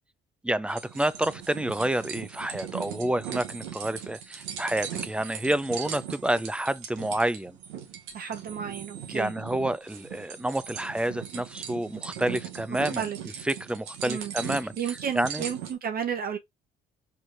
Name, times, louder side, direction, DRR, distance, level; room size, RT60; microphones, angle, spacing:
voice 1, 0.4-7.6 9.1-13.0 13.4-14.7 15.1-15.4, right 1 dB, 5° right, 0.4 m, -29 dB
sound 1, 0.7-15.7, right 9 dB, 90° right, 0.9 m, -39 dB
voice 2, 8.1-9.3 12.7-13.2 14.0-14.3 14.8-16.4, right 8 dB, 50° right, 0.7 m, -32 dB
4.5 x 2.9 x 2.5 m
supercardioid pair, 65°, 20 cm